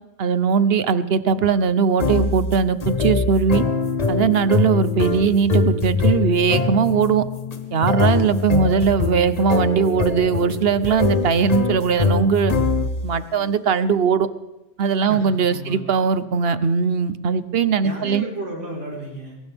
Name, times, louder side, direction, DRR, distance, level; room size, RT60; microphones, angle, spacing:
voice 1, 0.2-3.6 4.1-7.2 7.7-12.5 13.0-14.3 14.8-18.3, right 6 dB, 60° right, 14 dB, 1.0 m, -20 dB
sound 1, 2.0-13.2, left 4 dB, 35° left, 1.1 m, -23 dB
voice 2, 15.0-15.9 17.8-19.4, right 1 dB, 85° right, -5 dB, 4.9 m, -33 dB
21.5 x 18.5 x 3.5 m, 1.0 s
omnidirectional pair, 1.2 m